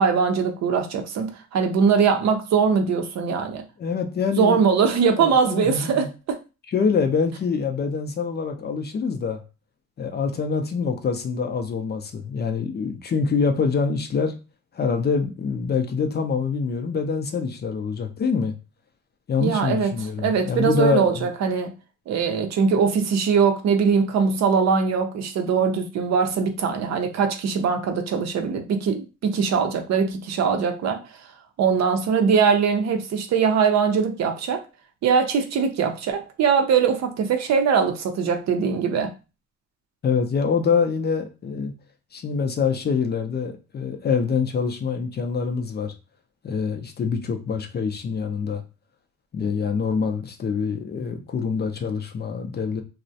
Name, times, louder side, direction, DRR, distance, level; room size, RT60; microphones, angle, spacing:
voice 1, 0.0-3.6 4.4-6.4 19.4-21.7 22.1-31.0 31.6-34.6 35.0-39.1, right 6 dB, 60° right, 0.5 m, -21 dB
voice 2, 3.8-4.6 5.2-6.1 6.7-9.4 10.0-14.3 14.7-18.5 19.3-21.3 40.0-41.7 42.1-45.9 46.4-48.6 49.3-52.8, left 5 dB, 35° left, 0.4 m, -25 dB
2.3 x 2.0 x 2.6 m
cardioid pair, 90°, 30 cm